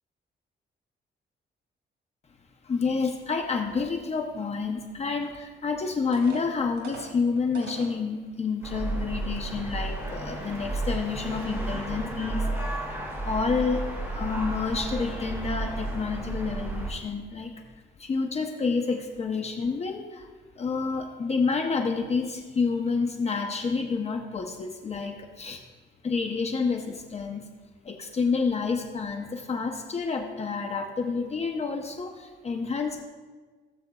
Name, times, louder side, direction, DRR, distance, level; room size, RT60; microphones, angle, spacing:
voice 1, 2.6-13.0 13.2-17.6 18.0-20.3 20.6-25.6 26.0-27.5 27.8-33.0, left 4 dB, 35° left, 3 dB, 0.8 m, -29 dB
sound 1, 5.5-5.6 6.1-8.0 8.6-8.7 9.3-9.5, right 3 dB, 85° right, 2.3 m, -43 dB
sound 2, 8.6-16.9, right 2 dB, 15° right, 2.4 m, -32 dB
18.0 x 7.8 x 2.3 m, 1.4 s
cardioid pair, 135°, 19 cm